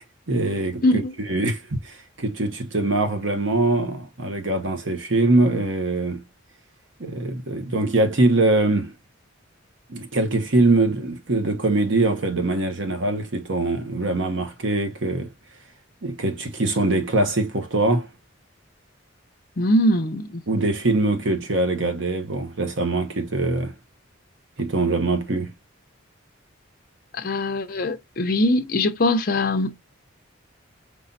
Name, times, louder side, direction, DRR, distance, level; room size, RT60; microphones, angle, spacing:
voice 1, 0.3-0.8 1.2-6.2 7.0-8.9 9.9-15.3 16.0-18.1 20.5-23.7 24.6-25.5, right 2 dB, 65° right, 1.0 m, -23 dB
voice 2, 0.8-1.1 19.6-20.4 27.1-29.8, left 1 dB, 45° left, 0.6 m, -22 dB
5.4 x 3.2 x 2.7 m
head